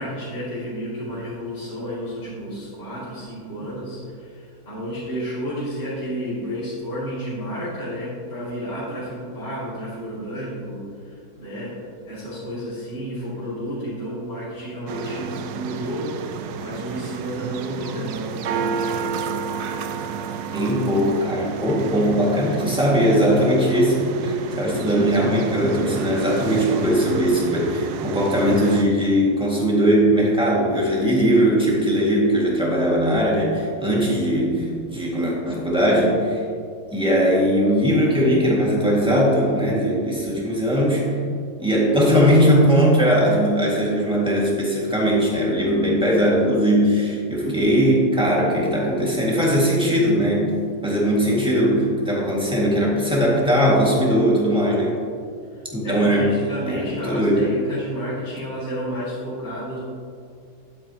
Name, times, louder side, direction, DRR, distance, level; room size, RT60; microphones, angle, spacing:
voice 1, 0.0-11.8 12.1-16.1 16.6-19.4 55.5-59.8, equal, 40° left, -11 dB, 3.0 m, -31 dB
sound 1, 14.9-28.8, right 6 dB, 85° right, 1.2 m, -31 dB
voice 2, 20.5-36.5 36.9-41.2 41.6-50.6 50.8-55.0 55.7-56.3 56.7-57.5, equal, 5° right, -5 dB, 1.9 m, -19 dB
11.5 x 8.6 x 2.9 m, 2.3 s
omnidirectional pair, 1.7 m